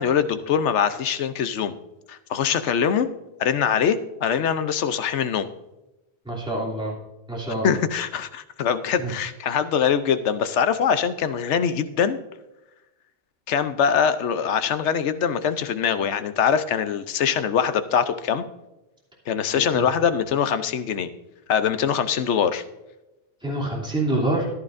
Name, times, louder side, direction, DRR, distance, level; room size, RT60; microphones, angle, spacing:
voice 1, 0.0-1.8 2.1-3.1 3.4-5.5 7.6-12.2 13.5-18.4 19.3-21.1 21.5-22.6, left 7 dB, 85° left, 11 dB, 1.0 m, -23 dB
voice 2, 6.2-7.0 7.3-7.8 9.0-9.1 19.5-19.9 23.4-24.5, right 1 dB, 5° right, -5 dB, 2.8 m, -26 dB
14.5 x 11.0 x 2.6 m, 0.98 s
omnidirectional pair, 1.2 m